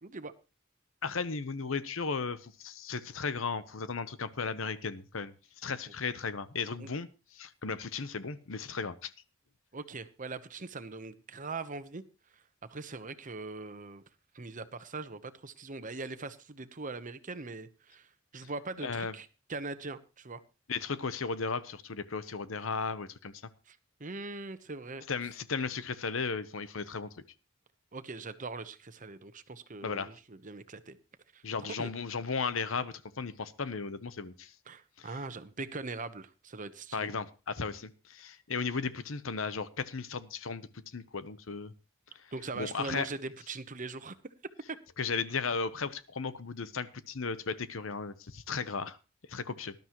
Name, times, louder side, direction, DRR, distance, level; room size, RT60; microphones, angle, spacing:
voice 1, 0.0-0.3 6.8-6.9 9.7-12.0 12.3-12.4 12.7-14.0 14.3-20.4 23.7-25.1 27.9-31.0 31.3-31.9 34.7-37.1 42.3-44.2, right 3 dB, 40° right, 12 dB, 1.0 m, -41 dB
voice 2, 1.0-5.3 5.6-7.1 7.3-9.1 18.8-19.1 20.7-23.3 25.1-27.1 29.8-30.1 31.4-34.5 35.0-35.1 36.9-41.7 42.5-43.1 45.0-49.0 49.3-49.7, left 5 dB, 75° left, 14 dB, 0.9 m, -35 dB
19.0 x 12.0 x 3.1 m, 0.31 s
head